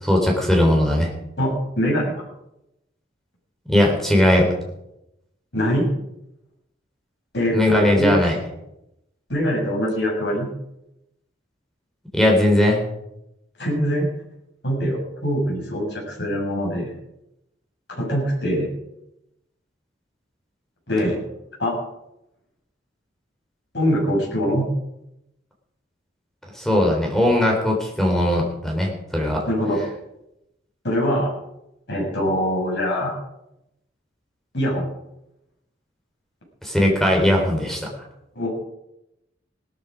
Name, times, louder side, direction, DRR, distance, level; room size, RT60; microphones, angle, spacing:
voice 1, 0.0-1.1 3.7-4.5 7.5-8.4 12.1-12.8 26.6-29.4 36.6-37.9, left 1 dB, ahead, 0 dB, 3.7 m, -19 dB
voice 2, 1.4-2.1 5.5-5.9 7.3-8.2 9.3-10.5 13.6-14.1 14.6-16.9 17.9-18.7 20.9-21.2 21.6-21.8 23.7-24.7 29.5-29.8 30.8-31.3 31.9-33.2 34.5-34.9 38.4-38.5, equal, 60° left, -3 dB, 7.4 m, -23 dB
17.5 x 13.5 x 5.1 m, 0.86 s
head